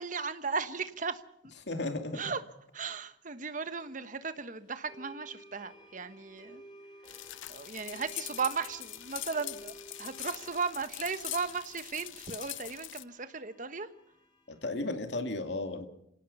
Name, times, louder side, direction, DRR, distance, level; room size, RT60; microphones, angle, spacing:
voice 1, 0.0-1.5 2.1-2.4 2.7-6.6 7.5-13.9, right 5 dB, 40° right, 11 dB, 1.2 m, -36 dB
voice 2, 1.7-2.3 14.5-15.9, left 2 dB, 65° left, 6 dB, 2.5 m, -34 dB
sound 1, 3.8-3.9 4.8-14.9, equal, 25° left, 6.4 m, -55 dB
sound 2, 7.1-13.0, left 14 dB, 85° left, 0.8 m, -42 dB
27.5 x 18.0 x 5.5 m, 0.77 s
head